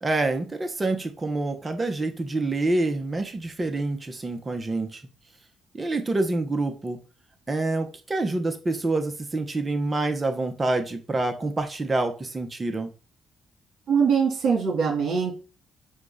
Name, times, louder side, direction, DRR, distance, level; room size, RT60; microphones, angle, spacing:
voice 1, 0.0-5.0 5.7-7.0 7.5-12.9, right 2 dB, 25° right, 5 dB, 1.1 m, -27 dB
voice 2, 13.9-15.3, right 6 dB, 65° right, 0 dB, 2.6 m, -22 dB
7.5 x 2.6 x 4.9 m, 0.34 s
cardioid pair, 90°, 0 cm